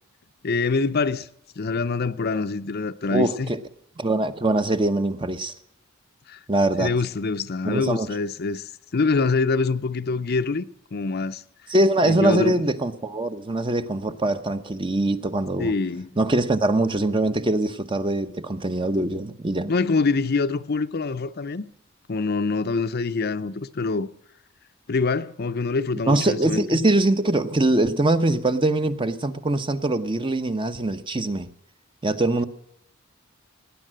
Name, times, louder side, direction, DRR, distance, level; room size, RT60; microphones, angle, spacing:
voice 1, 0.4-1.3 1.6-3.5 6.3-6.4 6.8-11.4 12.0-12.6 15.6-16.2 19.7-21.7 22.1-24.1 24.9-26.8, left 4 dB, 50° left, 0.6 m, -25 dB
voice 2, 3.1-3.6 4.0-5.5 6.5-6.9 7.6-8.1 11.7-15.7 16.2-19.7 26.1-31.5 32.0-32.4, right 2 dB, 25° right, 0.9 m, -23 dB
18.5 x 10.0 x 7.6 m
head